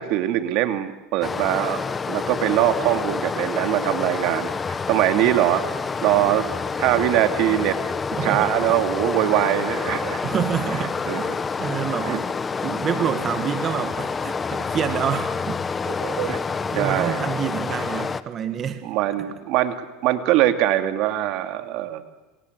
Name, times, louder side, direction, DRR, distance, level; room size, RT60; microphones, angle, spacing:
voice 1, 0.0-5.6 6.0-6.5 6.8-7.8 8.2-10.2 11.1-11.4 12.0-12.2 13.0-13.2 15.9-16.4 16.8-17.2 18.8-19.8 20.0-22.0, right 13 dB, 60° right, 8 dB, 2.4 m, -22 dB
Stream, 1.2-18.2, left 5 dB, 20° left, 1.1 m, -28 dB
voice 2, 8.1-8.6 10.2-11.3 11.6-12.3 12.6-15.6 16.7-18.8, right 8 dB, 35° right, 9 dB, 1.8 m, -27 dB
27.5 x 26.5 x 8.1 m, 1.1 s
supercardioid pair, 120°, 0 cm